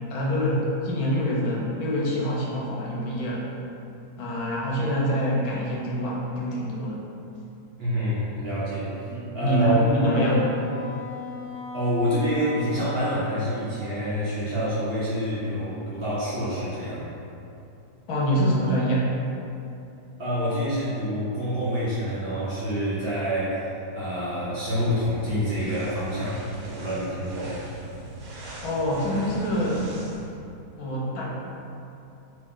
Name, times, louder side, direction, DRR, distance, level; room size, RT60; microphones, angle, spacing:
voice 1, 0.1-3.5 4.2-7.0 9.1-10.4 18.1-19.1 28.6-29.9 30.8-31.3, equal, 75° left, -4 dB, 1.2 m, -25 dB
voice 2, 7.8-10.4 11.7-17.1 20.2-27.6, equal, 55° right, -10 dB, 0.7 m, -27 dB
Wind instrument woodwind instrument, 9.7-14.2, left 4 dB, ahead, 0.7 m, -40 dB
sound 1, 24.8-30.4, right 1 dB, 85° right, 1.3 m, -42 dB
3.0 x 2.7 x 3.6 m, 2.8 s
omnidirectional pair, 1.6 m